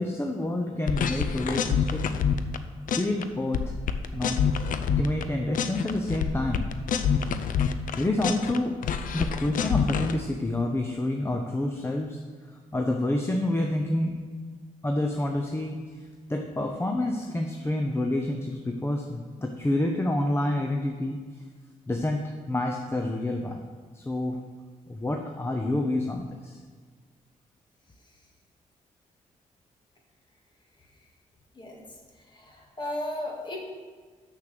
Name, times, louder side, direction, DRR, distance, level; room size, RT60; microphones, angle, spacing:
voice 1, 0.0-2.1 2.9-3.8 4.1-6.6 7.9-8.8 9.1-12.2 12.5-14.2 14.8-21.2 21.9-23.6 23.9-24.4 24.9-26.6, left 1 dB, 15° left, 3 dB, 0.7 m, -28 dB
sound 1, 0.9-2.6 2.9-3.2 3.5-5.2 5.5-8.6 8.8-10.2, left 7 dB, 75° left, 0.5 m, -27 dB
voice 2, 32.3-33.7, left 1 dB, 35° left, 0 dB, 1.9 m, -35 dB
6.6 x 6.5 x 6.8 m, 1.5 s
cardioid pair, 95°, 14 cm